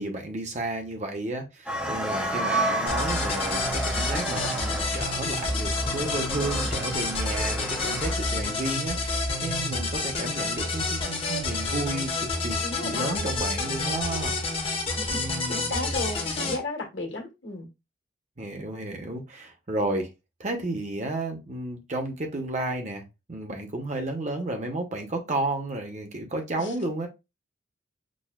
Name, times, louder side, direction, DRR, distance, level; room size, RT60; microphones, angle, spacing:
voice 1, 0.0-12.6 12.8-14.8 15.1-15.9 18.4-20.1 20.4-27.1, right 2 dB, 35° right, 0.8 m, -32 dB
sound 1, 1.7-8.1, right 1 dB, 5° right, 0.6 m, -31 dB
sound 2, 2.9-16.6, left 2 dB, 30° left, 0.8 m, -29 dB
voice 2, 12.6-13.2 14.9-17.7 26.6-26.7, left 2 dB, 70° left, 1.4 m, -34 dB
6.2 x 2.2 x 2.3 m
head